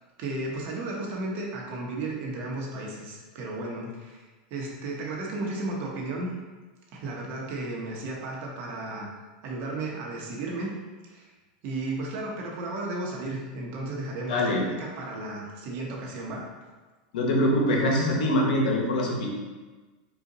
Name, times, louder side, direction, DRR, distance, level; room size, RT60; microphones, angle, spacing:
voice 1, 0.2-6.3 6.9-9.1 9.4-10.7 11.1-11.3 11.6-16.5, right 2 dB, 50° right, -2 dB, 1.0 m, -34 dB
voice 2, 14.3-14.6 17.1-19.3, left 1 dB, 80° left, 0 dB, 0.9 m, -24 dB
4.0 x 2.5 x 3.8 m, 1.3 s
supercardioid pair, 130°, 4 cm